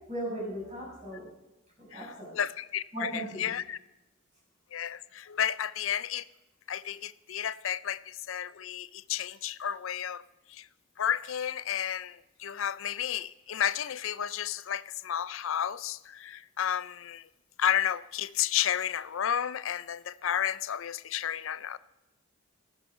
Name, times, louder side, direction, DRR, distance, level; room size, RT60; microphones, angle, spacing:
voice 1, 0.1-1.3 1.8-2.4 2.9-3.5, right 1 dB, 35° right, -3 dB, 6.9 m, -37 dB
voice 2, 2.3-3.8 4.7-6.2 6.7-10.2 10.5-10.7 11.0-17.2 17.6-21.8, left 9 dB, 70° left, 17 dB, 0.5 m, -32 dB
15.5 x 11.5 x 5.6 m, 1.0 s
head